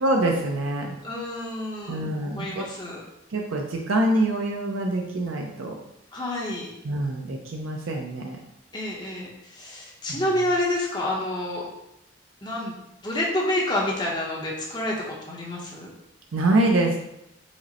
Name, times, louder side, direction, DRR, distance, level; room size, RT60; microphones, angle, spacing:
voice 1, 0.0-1.0 1.9-2.7 3.3-5.7 6.8-8.4 10.1-10.3 16.3-17.0, right 1 dB, 85° right, 1 dB, 0.5 m, -25 dB
voice 2, 1.0-3.0 6.1-6.7 8.7-11.6 12.4-12.7 13.0-15.9, left 1 dB, 20° left, -3 dB, 0.8 m, -28 dB
5.0 x 2.1 x 4.1 m, 0.86 s
head